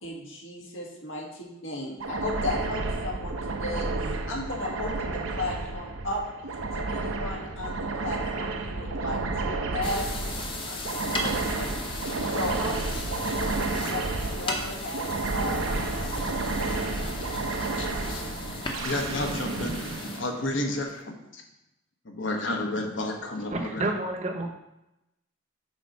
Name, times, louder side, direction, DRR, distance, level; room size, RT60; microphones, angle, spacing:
voice 1, 0.0-3.4 3.6-3.9 4.3-6.2 6.9-10.1 10.3-11.7 12.3-14.0 14.3-16.3, left 2 dB, 85° left, -1 dB, 1.7 m, -35 dB
sound 1, 2.0-20.9, right 3 dB, 85° right, 0.7 m, -31 dB
sound 2, 9.8-20.2, left 2 dB, 25° left, 0.8 m, -36 dB
voice 2, 17.8-18.2 18.8-21.4 22.0-23.9, left 2 dB, 70° left, 2 dB, 1.1 m, -32 dB
voice 3, 23.5-24.5, right 2 dB, 35° right, 4 dB, 0.8 m, -29 dB
6.2 x 4.4 x 5.3 m, 0.90 s
head